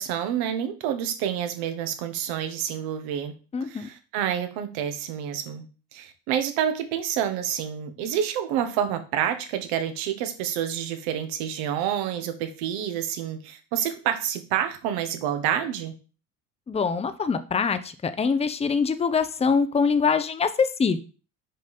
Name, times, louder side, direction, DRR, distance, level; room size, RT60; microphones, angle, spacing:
voice 1, 0.0-3.3 3.6-5.6 5.9-15.9, right 9 dB, 80° right, 8 dB, 1.4 m, -28 dB
voice 2, 3.5-3.9 16.7-21.0, left 5 dB, 15° left, 11 dB, 0.7 m, -24 dB
6.5 x 5.2 x 4.2 m, 0.35 s
supercardioid pair, 100°, 36 cm